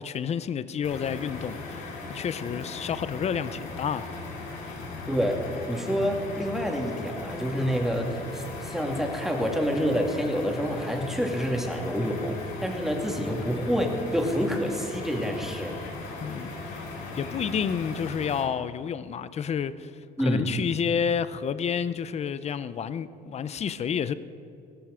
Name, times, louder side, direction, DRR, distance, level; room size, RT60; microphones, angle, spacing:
voice 1, 0.0-4.1 4.6-4.8 16.2-16.8 17.2-19.9 20.2-24.1, left 7 dB, 40° left, 14 dB, 0.6 m, -30 dB
sound 1, 0.8-18.4, left 3 dB, 90° left, 3.9 m, -38 dB
voice 2, 5.1-15.7 20.2-20.5, equal, ahead, 1 dB, 2.3 m, -28 dB
15.5 x 14.0 x 5.1 m, 2.7 s
cardioid pair, 110°, 17 cm